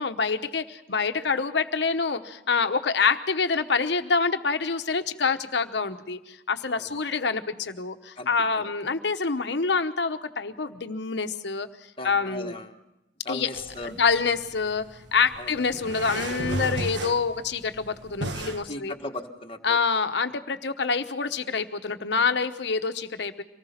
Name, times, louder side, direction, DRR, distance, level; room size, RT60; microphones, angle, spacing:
voice 1, 0.0-11.7 12.0-12.5 13.3-13.5 13.8-14.8 15.1-18.9 19.6-23.4, left 5 dB, 70° left, 9 dB, 1.1 m, -26 dB
voice 2, 6.7-7.0 8.2-8.7 12.0-12.8 13.2-13.9 15.4-15.6 18.7-19.8, left 2 dB, 30° left, 4 dB, 1.5 m, -38 dB
sound 1, 13.6-18.6, right 1 dB, 75° right, 1.4 m, -35 dB
25.0 x 19.0 x 5.8 m, 0.94 s
head